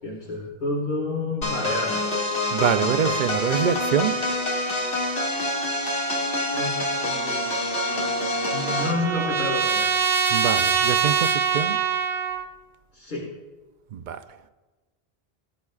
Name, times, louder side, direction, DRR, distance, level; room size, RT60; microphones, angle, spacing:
voice 1, 0.0-2.1 6.5-10.0 12.9-13.3, left 2 dB, 50° left, 1.9 m, -30 dB
sound 1, 1.4-9.0, left 1 dB, 80° left, 2.4 m, -26 dB
voice 2, 2.5-4.2 10.3-11.8 13.9-14.2, right 8 dB, 55° right, 0.6 m, -25 dB
Trumpet, 7.7-12.4, right 6 dB, 75° right, 1.0 m, -24 dB
19.5 x 11.0 x 2.4 m
omnidirectional pair, 1.0 m